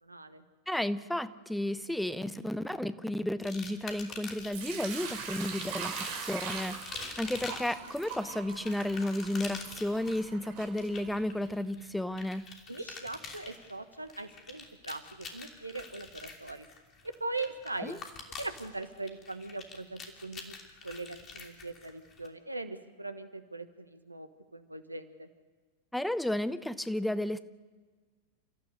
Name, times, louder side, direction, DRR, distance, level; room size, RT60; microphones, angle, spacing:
voice 1, 0.0-0.4 12.7-16.7 17.0-18.1 18.4-20.6 20.8-25.3, right 2 dB, 85° right, 10 dB, 1.3 m, -40 dB
voice 2, 0.7-12.4 17.8-18.0 25.9-27.4, left 1 dB, 5° left, 14 dB, 0.7 m, -33 dB
sound 1, 3.4-4.7 5.4-22.3, left 4 dB, 25° left, 2.9 m, -46 dB
Sink (filling or washing) / Liquid, 4.5-11.4, right 5 dB, 45° right, 4.2 m, -41 dB
29.5 x 14.5 x 6.7 m, 1.4 s
figure-of-eight pair, 90°, 0 cm